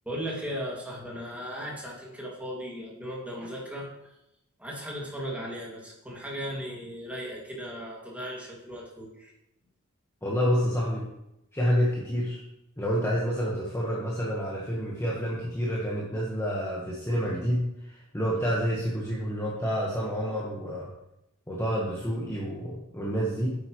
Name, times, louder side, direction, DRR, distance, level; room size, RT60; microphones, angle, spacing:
voice 1, 0.1-3.9 4.6-9.3, equal, 5° right, -4 dB, 2.2 m, -37 dB
voice 2, 10.2-11.1 11.5-12.4 12.8-20.9 21.5-23.6, equal, 10° left, -5 dB, 1.3 m, -28 dB
9.2 x 7.7 x 3.1 m, 0.85 s
head